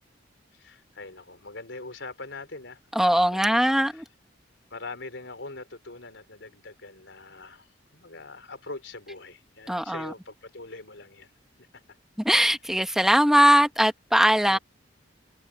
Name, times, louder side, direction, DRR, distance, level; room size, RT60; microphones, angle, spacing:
voice 1, 0.5-4.0 4.7-11.3 11.7-11.8 14.4-14.6, left 3 dB, 70° left, 5.1 m, -43 dB
voice 2, 3.0-4.0 9.7-10.1 12.2-14.6, equal, 5° right, 1.8 m, -20 dB
open air
head